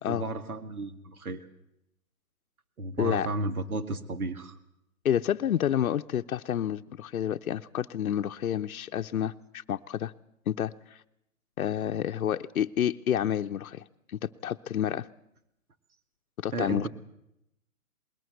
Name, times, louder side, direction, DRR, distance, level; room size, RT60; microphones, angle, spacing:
voice 1, 0.1-1.4 2.8-4.5 16.5-16.9, right 2 dB, 80° right, 10 dB, 2.1 m, -33 dB
voice 2, 3.0-3.3 5.0-10.1 10.5-10.7 11.6-15.1 16.4-16.9, left 10 dB, 75° left, 7 dB, 0.8 m, -29 dB
21.0 x 18.5 x 7.9 m, 0.83 s
hypercardioid pair, 145°, 43 cm